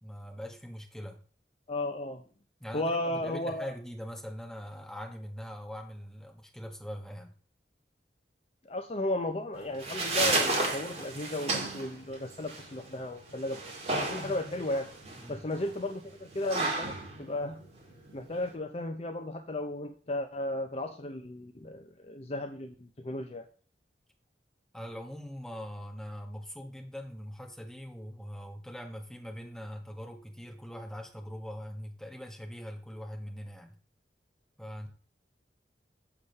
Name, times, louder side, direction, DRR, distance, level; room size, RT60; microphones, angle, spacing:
voice 1, 0.0-1.2 2.6-7.3 15.1-15.4 24.7-33.8 34.6-34.9, equal, 5° left, 2 dB, 1.4 m, -42 dB
voice 2, 1.7-2.2 2.7-3.7 8.7-13.6 14.0-14.9 15.3-16.9 17.2-17.6 18.1-23.5, left 1 dB, 35° left, 6 dB, 0.6 m, -34 dB
sound 1, 9.5-18.5, right 2 dB, 35° right, 2.3 m, -33 dB
7.1 x 4.9 x 6.6 m, 0.41 s
head